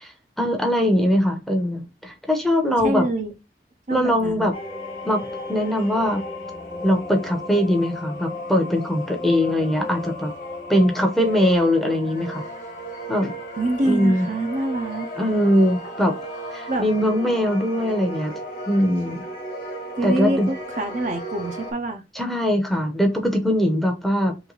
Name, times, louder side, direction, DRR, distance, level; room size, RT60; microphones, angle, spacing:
voice 1, 0.0-3.0 3.9-4.5 5.0-5.2 5.5-6.2 6.8-10.3 10.7-12.4 13.1-13.3 13.8-14.3 15.2-16.1 16.5-18.3 18.7-19.3 20.0-20.5 22.1-24.4, equal, ahead, 0.7 m, -21 dB
voice 2, 2.8-3.3 3.9-4.5 13.6-15.1 15.8-15.9 16.7-16.9 20.0-22.0, right 2 dB, 45° right, 0.6 m, -26 dB
sound 1, 4.5-21.7, equal, 45° left, 1.3 m, -35 dB
3.3 x 3.1 x 3.9 m
head